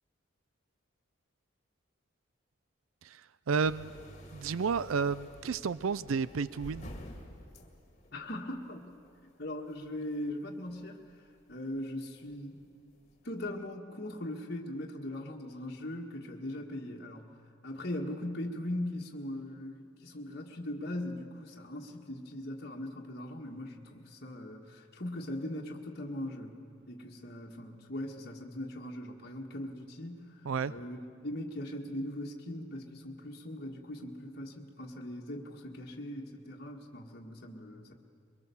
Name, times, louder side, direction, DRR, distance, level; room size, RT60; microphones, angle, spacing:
voice 1, 3.5-3.9 4.3-6.9 30.5-30.7, right 5 dB, 85° right, 17 dB, 0.5 m, -31 dB
sound 1, 3.6-13.5, equal, 35° left, 2.1 m, -52 dB
voice 2, 8.1-8.9 9.4-11.0 11.5-12.6 13.2-26.6 26.9-37.9, left 1 dB, 50° left, -1 dB, 1.6 m, -40 dB
23.0 x 22.5 x 7.0 m, 2.3 s
head